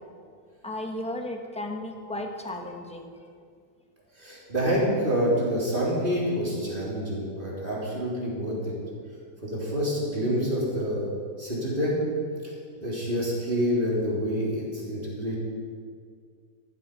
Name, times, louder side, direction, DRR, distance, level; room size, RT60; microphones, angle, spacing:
voice 1, 0.6-3.2, left 1 dB, 5° left, 2 dB, 1.1 m, -34 dB
voice 2, 4.2-8.6 9.4-11.1 11.4-12.0 12.4-12.5 12.8-15.4, equal, 30° right, -6 dB, 3.8 m, -27 dB
14.5 x 12.5 x 5.4 m, 2.1 s
omnidirectional pair, 1.8 m